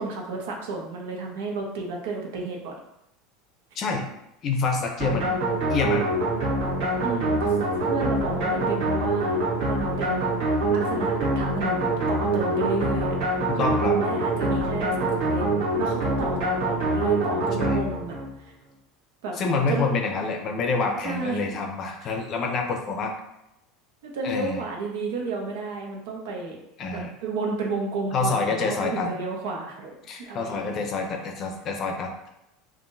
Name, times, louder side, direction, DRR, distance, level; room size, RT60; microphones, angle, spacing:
voice 1, 0.0-2.7 7.0-10.4 10.7-13.1 13.5-18.5 19.2-19.3 19.7-19.9 21.0-21.6 22.0-22.2 24.0-26.6 26.9-30.8, right 3 dB, 80° right, 0 dB, 1.0 m, -32 dB
voice 2, 3.8-4.1 4.4-5.4 5.7-6.1 13.5-14.0 17.6-17.8 19.4-23.1 24.2-24.6 26.8-27.1 28.1-29.2 30.0-32.3, left 4 dB, 30° left, 3 dB, 0.6 m, -27 dB
sound 1, 5.0-18.3, right 2 dB, 60° right, 1.4 m, -25 dB
5.6 x 2.5 x 2.6 m, 0.83 s
supercardioid pair, 165°, 0 cm